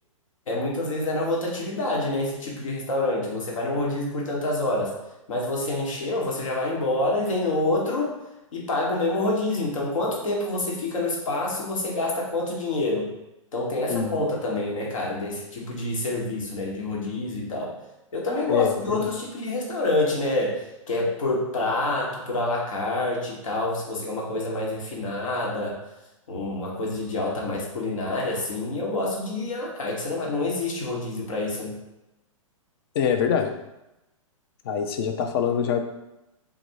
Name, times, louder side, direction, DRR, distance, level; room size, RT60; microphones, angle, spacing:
voice 1, 0.5-5.0 5.3-8.2 8.5-13.1 13.5-17.8 18.1-25.8 26.3-31.8, left 2 dB, 70° left, -3 dB, 1.5 m, -27 dB
voice 2, 13.9-14.3 18.5-19.0 32.9-33.5 34.6-35.8, left 7 dB, 45° left, 5 dB, 0.6 m, -24 dB
4.0 x 2.6 x 4.6 m, 0.94 s
hypercardioid pair, 125°, 18 cm